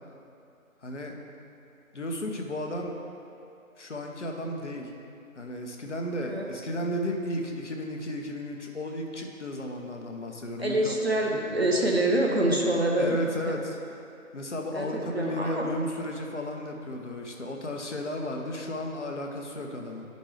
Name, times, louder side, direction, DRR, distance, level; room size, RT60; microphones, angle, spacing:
voice 1, 0.8-1.1 1.9-2.9 3.8-4.9 5.4-11.0 13.0-13.8 14.3-20.1, left 1 dB, 55° left, 2 dB, 0.9 m, -34 dB
voice 2, 10.6-13.2 13.5-13.6 14.7-15.6, right 1 dB, 45° right, -1 dB, 0.8 m, -26 dB
9.6 x 5.2 x 3.3 m, 2.6 s
figure-of-eight pair, 165°, 43 cm